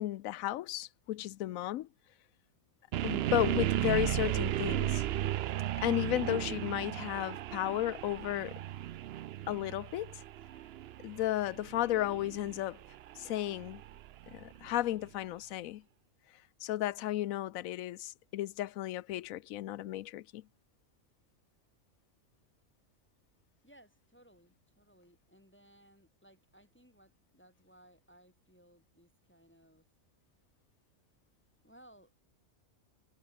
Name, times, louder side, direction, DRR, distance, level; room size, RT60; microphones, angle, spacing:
voice 1, 0.0-1.9 3.0-5.0 5.8-8.5 9.5-10.2 11.0-12.8 13.2-13.8 14.3-15.8 16.6-20.4, left 14 dB, 80° left, 1.0 m, -34 dB
sound 1, 2.9-14.9, right 13 dB, 65° right, 0.6 m, -35 dB
voice 2, 23.6-29.9 31.6-32.2, right 1 dB, 10° left, 4.0 m, -62 dB
omnidirectional pair, 1.4 m